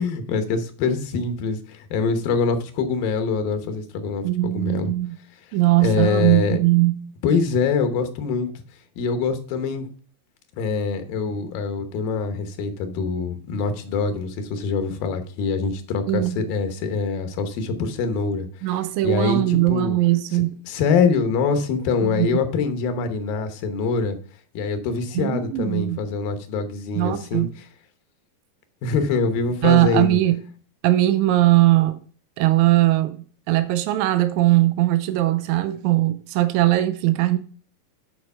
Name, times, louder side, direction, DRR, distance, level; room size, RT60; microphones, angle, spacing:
voice 1, 0.0-4.9 5.8-6.6 7.2-8.5 9.0-9.9 10.6-18.5 19.0-20.0 20.3-24.2 24.5-27.7 28.8-30.2, left 5 dB, 90° left, 2.8 m, -24 dB
voice 2, 4.2-5.2 5.5-7.1 16.1-16.4 18.6-20.5 22.0-22.3 25.1-26.0 26.9-27.6 29.6-30.4 30.8-32.0 32.4-33.2 33.5-37.4, right 16 dB, 80° right, 1.7 m, -20 dB
9.6 x 4.4 x 5.4 m
omnidirectional pair, 3.9 m